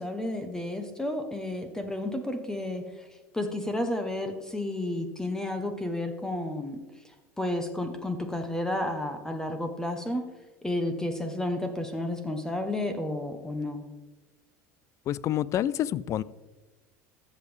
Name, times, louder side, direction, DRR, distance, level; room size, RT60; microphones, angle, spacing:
voice 1, 0.0-3.1 3.3-6.8 7.4-10.2 10.6-13.8, left 1 dB, 5° left, 6 dB, 1.0 m, -31 dB
voice 2, 15.1-16.2, left 12 dB, 40° left, 21 dB, 0.4 m, -28 dB
13.5 x 7.2 x 3.4 m, 1.2 s
supercardioid pair, 105°, 8 cm